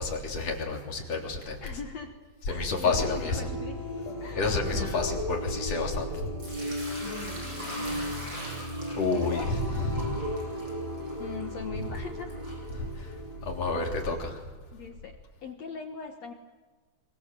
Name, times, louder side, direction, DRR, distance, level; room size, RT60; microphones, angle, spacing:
voice 1, 0.0-1.6 2.5-3.4 4.4-6.1 8.9-10.1 12.7-13.1 13.5-14.4, left 3 dB, 35° left, 1 dB, 4.2 m, -29 dB
voice 2, 1.6-2.2 2.5-3.8 4.2-5.2 7.0-7.9 9.2-9.9 11.2-12.5 14.7-16.3, left 6 dB, 70° left, 5 dB, 1.6 m, -41 dB
sound 1, 2.9-14.2, equal, 10° left, 3.8 m, -36 dB
Sink (filling or washing) / Liquid, 6.4-13.3, equal, 25° right, 7.8 m, -43 dB
28.0 x 23.5 x 7.7 m, 1.4 s
omnidirectional pair, 5.2 m